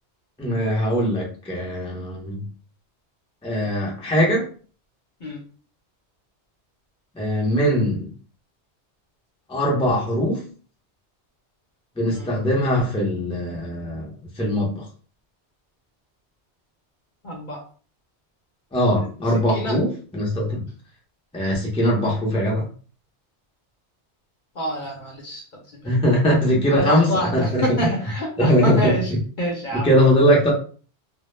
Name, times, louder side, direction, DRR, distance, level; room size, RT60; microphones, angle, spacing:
voice 1, 0.4-2.4 3.4-4.5 7.2-8.1 9.5-10.4 12.0-14.1 14.4-14.8 18.7-20.6 21.3-22.7 25.8-27.9 28.4-29.0 29.7-30.5, equal, 5° left, -3 dB, 0.5 m, -21 dB
voice 2, 17.2-17.6 19.5-19.8 24.6-25.4 25.8-25.9 26.7-29.1 29.4-29.9, equal, 50° left, -1 dB, 0.8 m, -26 dB
2.2 x 2.0 x 3.1 m, 0.40 s
omnidirectional pair, 1.2 m